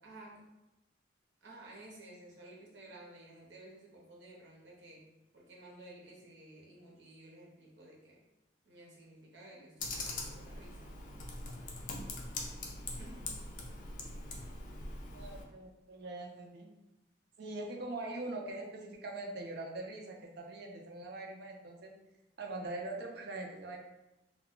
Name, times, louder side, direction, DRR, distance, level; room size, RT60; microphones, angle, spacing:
voice 1, 0.0-0.4 1.4-5.0 5.3-8.2 8.7-10.9 12.8-13.4, right 1 dB, 85° right, -3 dB, 0.8 m, -54 dB
Computer keyboard, 9.8-15.4, left 2 dB, 45° left, 0.4 m, -42 dB
voice 2, 15.1-16.7 17.4-21.9 22.4-23.8, right 2 dB, 60° right, 0 dB, 0.5 m, -42 dB
2.2 x 2.2 x 3.6 m, 0.96 s
head